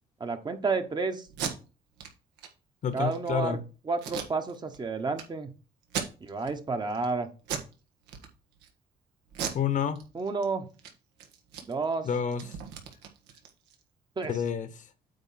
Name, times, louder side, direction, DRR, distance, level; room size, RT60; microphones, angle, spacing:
voice 1, 0.2-1.3 2.9-3.6 3.9-5.5 6.2-7.3 10.1-10.7 11.6-12.1 14.2-14.3, right 4 dB, 25° right, 1.0 m, -30 dB
Packing tape duct tape, 1.3-1.5 2.0-2.1 2.4-2.5 2.9-3.3 4.0-4.8 5.1-5.2 5.8-6.5 6.9-7.1 7.4-7.7 8.1-8.7 9.3-10.4 10.7-10.9 11.2-13.8, right 8 dB, 85° right, 1.5 m, -37 dB
voice 2, 2.8-3.6 9.5-10.0 12.0-12.6 14.3-14.8, left 7 dB, 50° left, 0.9 m, -29 dB
8.9 x 3.1 x 5.7 m
cardioid pair, 110°, 17 cm